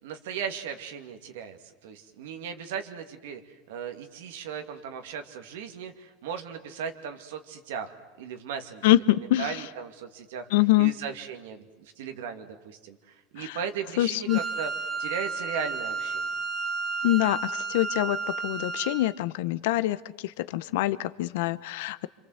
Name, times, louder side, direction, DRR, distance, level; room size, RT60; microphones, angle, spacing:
voice 1, 0.0-3.4 3.7-8.9 9.2-10.5 10.8-14.7 15.0-16.3, right 7 dB, 85° right, 6 dB, 2.5 m, -37 dB
voice 2, 8.8-9.6 10.5-10.9 13.4-13.6 14.0-14.4 17.0-22.1, left 16 dB, 80° left, 16 dB, 1.0 m, -25 dB
Wind instrument woodwind instrument, 14.3-19.1, right 4 dB, 25° right, 2.3 m, -32 dB
27.0 x 26.0 x 8.1 m, 1.1 s
supercardioid pair, 120°, 0 cm